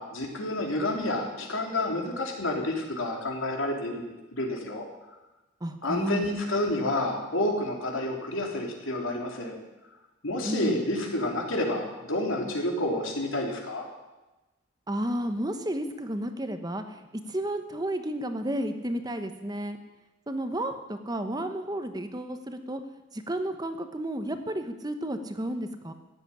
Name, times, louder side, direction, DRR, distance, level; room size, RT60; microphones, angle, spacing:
voice 1, 0.0-4.8 5.8-9.6 10.2-13.9, left 1 dB, 85° left, 1 dB, 3.3 m, -29 dB
voice 2, 5.6-6.3 10.4-10.8 14.9-19.8 20.3-22.8 23.1-25.9, right 1 dB, 20° right, 8 dB, 1.0 m, -32 dB
15.0 x 7.9 x 10.0 m, 1.1 s
head